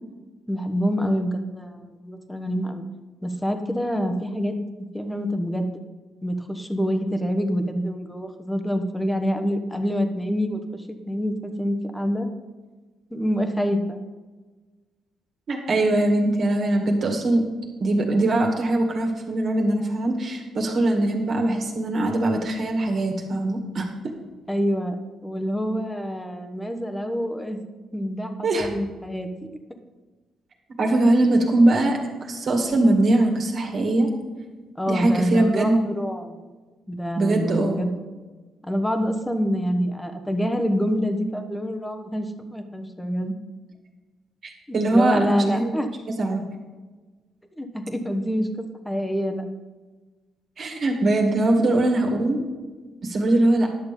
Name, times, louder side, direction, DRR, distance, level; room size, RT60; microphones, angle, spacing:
voice 1, 0.5-2.8 3.2-4.5 4.9-5.8 6.2-12.3 13.1-14.0 24.5-24.9 25.2-27.6 27.9-29.3 34.8-36.4 36.9-37.9 38.6-43.3 44.7-45.9 47.5-49.4 51.5-51.7, equal, 5° left, 7 dB, 1.2 m, -26 dB
voice 2, 15.5-17.4 17.8-23.9 28.4-28.7 30.8-34.1 34.9-35.8 37.2-37.8 44.4-45.7 46.1-46.4 50.6-52.4 53.0-53.7, right 2 dB, 55° right, 1 dB, 2.1 m, -21 dB
11.0 x 6.8 x 5.3 m, 1.3 s
cardioid pair, 90°, 0 cm